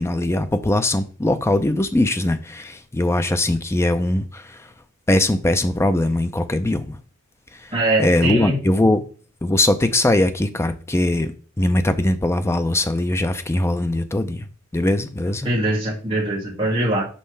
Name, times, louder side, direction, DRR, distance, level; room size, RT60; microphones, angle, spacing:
voice 1, 0.0-4.6 5.1-7.0 8.0-9.0 9.4-11.3 11.6-14.5 14.7-15.5, left 1 dB, 10° left, 0.4 m, -20 dB
voice 2, 7.7-8.6 15.4-17.0, right 1 dB, 25° right, 2.0 m, -22 dB
5.5 x 5.4 x 3.3 m
head